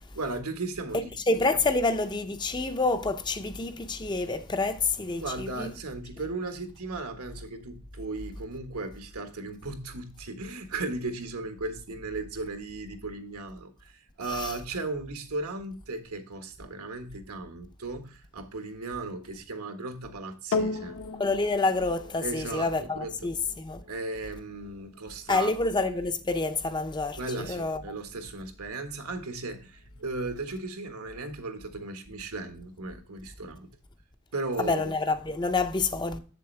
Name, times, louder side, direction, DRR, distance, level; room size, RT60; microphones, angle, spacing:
voice 1, 0.1-1.2 5.1-21.0 22.2-23.1 23.9-25.5 27.2-33.7 34.3-34.9, right 3 dB, 80° right, 1.4 m, -36 dB
voice 2, 0.9-5.7 14.3-14.6 21.2-23.8 25.3-27.8 34.6-36.2, left 3 dB, 20° left, 0.5 m, -28 dB
sound 1, 20.5-29.1 29.8-29.9, left 3 dB, 60° left, 0.9 m, -38 dB
7.8 x 6.9 x 3.3 m
head